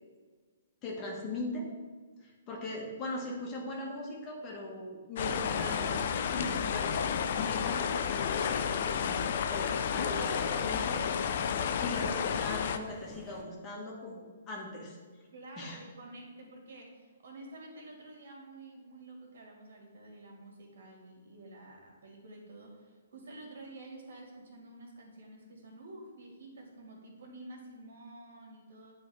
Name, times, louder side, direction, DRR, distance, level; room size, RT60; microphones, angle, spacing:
voice 1, 0.8-1.7 2.2-6.0 6.3-9.2 9.5-11.0 11.8-15.0 15.6-15.8, left 2 dB, 25° left, -3 dB, 1.4 m, -39 dB
sound 1, 5.2-12.8, left 7 dB, 55° left, 0.4 m, -31 dB
sound 2, 7.1-13.4, left 1 dB, 5° left, 0.8 m, -53 dB
voice 2, 15.3-28.9, right 2 dB, 60° right, 0 dB, 1.7 m, -50 dB
9.2 x 3.1 x 3.3 m, 1.5 s
hypercardioid pair, 130°, 0 cm